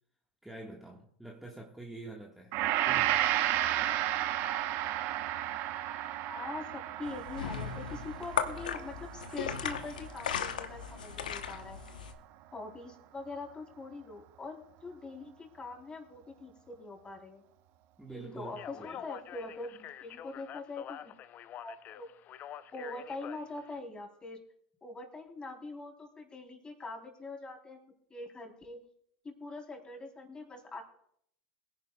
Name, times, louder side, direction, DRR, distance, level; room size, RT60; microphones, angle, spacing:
voice 1, 0.4-2.6 2.8-3.2 18.0-19.0, right 2 dB, 5° right, 1.5 m, -46 dB
Gong, 2.5-10.9 11.3-11.5, right 13 dB, 55° right, 0.9 m, -33 dB
voice 2, 6.3-11.8 12.5-17.4 18.1-21.1 21.6-22.1 22.7-24.4 24.8-27.8 28.1-28.8 29.2-30.8, left 3 dB, 20° left, 3.5 m, -43 dB
sound 1, 7.0-12.1, left 7 dB, 80° left, 1.0 m, -37 dB
Speech, 18.4-23.8, left 10 dB, 40° left, 0.6 m, -47 dB
21.5 x 10.5 x 2.3 m
hypercardioid pair, 85°, 4 cm